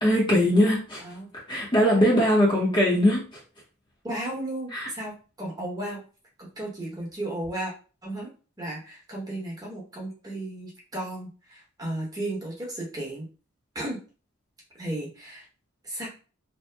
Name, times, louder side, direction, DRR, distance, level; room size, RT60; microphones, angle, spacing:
voice 1, 0.0-1.0 1.5-3.2 4.7-4.8, equal, 20° left, -4 dB, 0.7 m, -20 dB
voice 2, 1.0-1.3 4.0-6.0 6.4-7.7 8.0-8.3 8.6-13.3 13.7-14.0 14.8-15.4 15.8-16.1, right 1 dB, 15° right, -4 dB, 0.9 m, -34 dB
2.8 x 2.1 x 3.3 m, 0.36 s
head